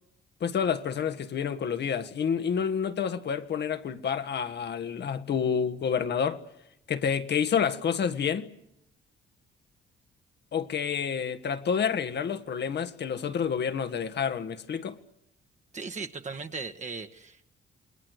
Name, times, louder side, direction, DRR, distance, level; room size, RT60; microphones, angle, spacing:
voice 1, 0.4-6.4 6.9-8.5 10.5-15.0, left 7 dB, 60° left, 1.7 m, -29 dB
voice 2, 15.7-17.4, right 4 dB, 35° right, 1.5 m, -37 dB
29.0 x 20.5 x 8.1 m
cardioid pair, 90°, 20 cm